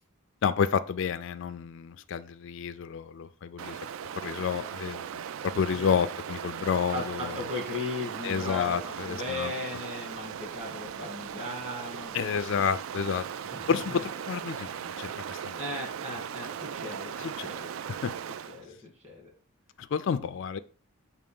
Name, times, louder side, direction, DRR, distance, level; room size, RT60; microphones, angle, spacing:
voice 1, 0.4-3.8 4.2-7.3 8.2-9.5 12.1-13.3 13.7-15.6 17.2-17.5 17.9-18.1 19.8-20.6, left 6 dB, 60° left, 0.3 m, -30 dB
Stream, 3.6-18.6, right 8 dB, 65° right, 0.3 m, -38 dB
voice 2, 6.9-12.2 13.5-14.0 15.6-17.7 18.5-19.3, left 2 dB, 30° right, 2.5 m, -37 dB
6.7 x 3.0 x 5.2 m
head